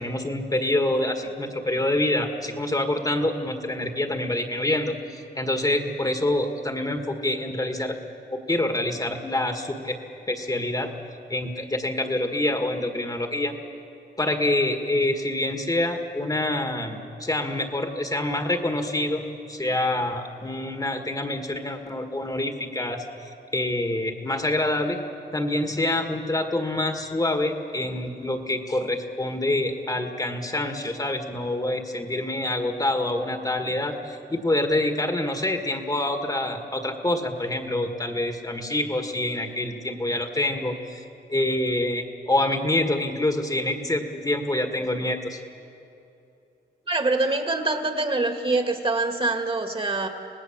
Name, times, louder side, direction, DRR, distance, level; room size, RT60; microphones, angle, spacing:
voice 1, 0.0-8.0 8.3-10.0 10.3-10.9 11.3-13.5 14.2-19.2 19.5-23.0 23.5-25.0 25.3-41.0 41.3-45.4, left 1 dB, 20° left, 5 dB, 1.7 m, -26 dB
voice 2, 46.9-50.1, right 2 dB, 30° right, 6 dB, 2.0 m, -24 dB
26.0 x 18.5 x 7.3 m, 2.8 s
cardioid pair, 95°, 19 cm